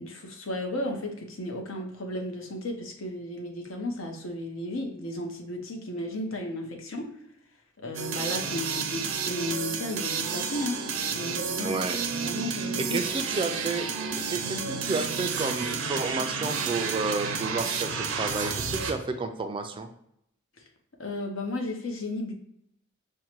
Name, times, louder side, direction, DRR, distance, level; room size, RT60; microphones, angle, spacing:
voice 1, 0.0-7.1 7.8-11.8 12.2-13.0 20.6-20.7 21.0-22.3, left 1 dB, 75° left, 3 dB, 0.8 m, -34 dB
sound 1, 7.9-18.9, right 5 dB, 85° right, 0.6 m, -31 dB
voice 2, 11.6-12.0 12.5-13.9 14.1-19.9, right 3 dB, 25° right, 6 dB, 0.3 m, -31 dB
5.4 x 2.2 x 2.9 m, 0.74 s
head